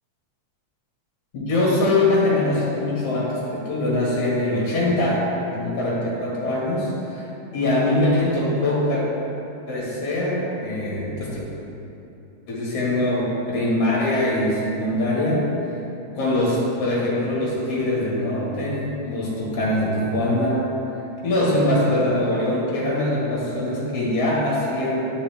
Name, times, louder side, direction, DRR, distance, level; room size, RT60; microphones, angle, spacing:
voice 1, 1.3-7.3 7.5-9.0 9.7-11.4 12.5-15.5 16.2-20.7 21.2-25.1, left 1 dB, 55° left, -5 dB, 2.5 m, -22 dB
11.5 x 5.4 x 3.3 m, 2.9 s
omnidirectional pair, 3.3 m